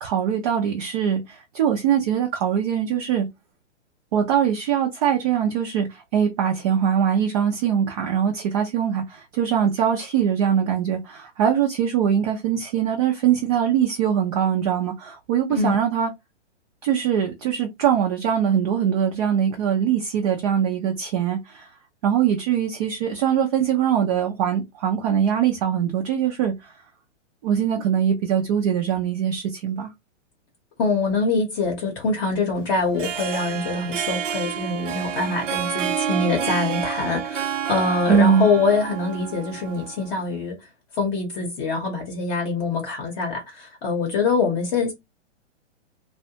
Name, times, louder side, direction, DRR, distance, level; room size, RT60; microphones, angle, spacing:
voice 1, 0.0-3.3 4.1-16.1 16.8-21.7 22.0-26.7 27.4-29.9 38.1-38.5, right 8 dB, 35° right, 0.4 m, -22 dB
voice 2, 30.8-40.6 41.0-44.9, left 3 dB, 30° left, 0.7 m, -24 dB
Harp, 32.8-40.2, right 8 dB, 80° right, 0.6 m, -29 dB
2.6 x 2.2 x 2.7 m
hypercardioid pair, 135°, 37 cm